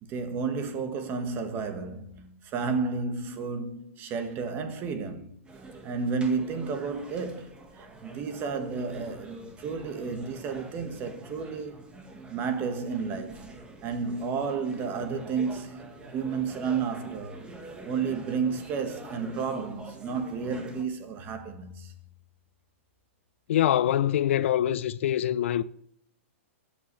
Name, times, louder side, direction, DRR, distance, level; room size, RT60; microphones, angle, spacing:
voice 1, 0.0-5.3 5.8-11.8 12.3-13.5 13.8-17.4 17.8-21.9, right 5 dB, 30° right, 1.5 m, -32 dB
sound 1, 5.4-20.8, right 2 dB, 15° right, 1.6 m, -46 dB
voice 2, 23.5-25.6, left 11 dB, 65° left, 0.5 m, -24 dB
13.0 x 8.5 x 3.2 m
hypercardioid pair, 140°, 7 cm